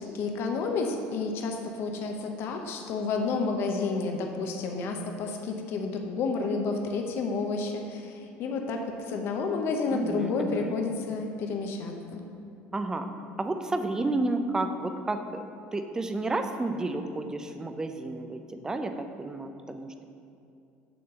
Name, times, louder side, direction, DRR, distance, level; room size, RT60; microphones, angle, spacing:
voice 1, 0.0-12.2, left 4 dB, 55° left, 3 dB, 0.7 m, -30 dB
voice 2, 9.9-10.8 12.7-13.1 13.4-15.4 15.7-20.0, right 2 dB, 10° right, 7 dB, 0.4 m, -31 dB
6.8 x 3.9 x 6.4 m, 2.6 s
cardioid pair, 135°, 5 cm